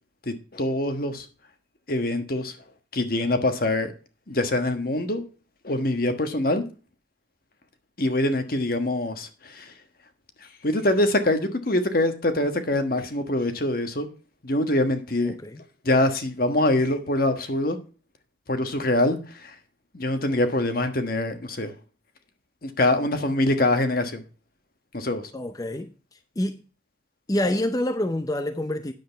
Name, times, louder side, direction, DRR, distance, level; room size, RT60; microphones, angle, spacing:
voice 1, 0.3-1.2 1.9-2.5 2.9-3.9 4.3-5.2 5.6-6.6 8.0-9.7 10.6-14.1 14.4-15.4 15.8-17.8 18.5-19.5 19.9-21.7 22.6-24.2 24.9-25.3, left 1 dB, 50° left, 1.3 m, -24 dB
voice 2, 15.2-15.6 25.3-25.9 26.4-26.6 27.3-28.9, left 1 dB, 20° left, 0.5 m, -27 dB
9.4 x 7.7 x 4.5 m
head